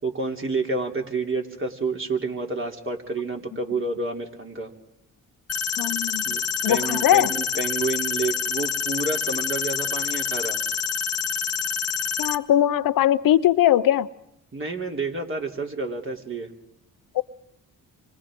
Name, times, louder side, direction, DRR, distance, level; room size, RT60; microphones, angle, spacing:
voice 1, 0.0-4.7 6.2-6.4 6.7-10.6 14.5-16.5, right 3 dB, 35° right, 1 dB, 3.3 m, -29 dB
sound 1, 5.5-12.4, left 7 dB, 40° left, 1.4 m, -27 dB
voice 2, 5.8-6.2 6.6-7.3 12.2-14.1 17.1-17.2, left 12 dB, 70° left, 13 dB, 0.8 m, -20 dB
30.0 x 25.0 x 3.8 m, 0.80 s
supercardioid pair, 65°, 35 cm